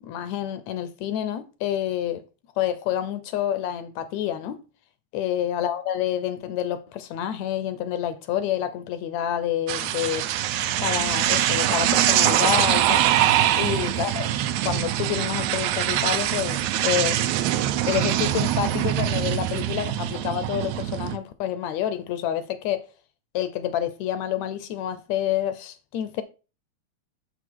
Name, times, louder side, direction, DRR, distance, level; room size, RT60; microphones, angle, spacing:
voice 1, 0.0-2.2 2.6-4.6 5.1-10.3 10.8-13.1 13.6-14.3 14.6-17.3 17.8-22.9 23.3-26.2, left 10 dB, 75° left, 1.9 m, -28 dB
sound 1, 9.7-21.2, right 12 dB, 80° right, 2.0 m, -23 dB
6.4 x 6.0 x 4.6 m
omnidirectional pair, 3.4 m